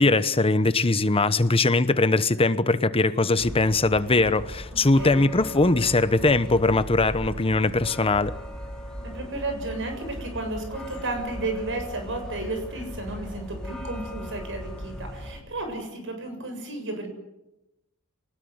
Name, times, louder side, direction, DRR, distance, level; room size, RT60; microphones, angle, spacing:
voice 1, 0.0-8.4, left 2 dB, 25° left, 1.0 m, -21 dB
sound 1, 3.4-15.4, equal, 5° left, 5.6 m, -38 dB
voice 2, 4.9-5.3 9.0-17.1, right 2 dB, 60° right, 7.3 m, -33 dB
27.0 x 19.5 x 9.6 m
head